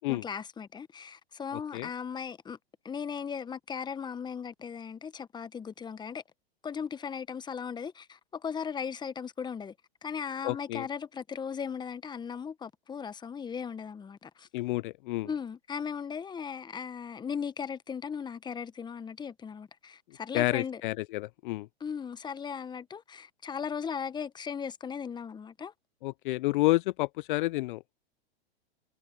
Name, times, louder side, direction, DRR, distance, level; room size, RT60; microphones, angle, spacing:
voice 1, 0.1-2.6 2.8-6.2 6.6-9.7 10.0-14.5 15.2-20.8 21.8-25.7, left 6 dB, 15° left, 1.1 m, -37 dB
voice 2, 1.5-1.9 10.4-10.9 14.5-15.3 20.3-21.7 26.0-27.8, left 19 dB, 50° left, 0.5 m, -30 dB
hypercardioid pair, 115°, 32 cm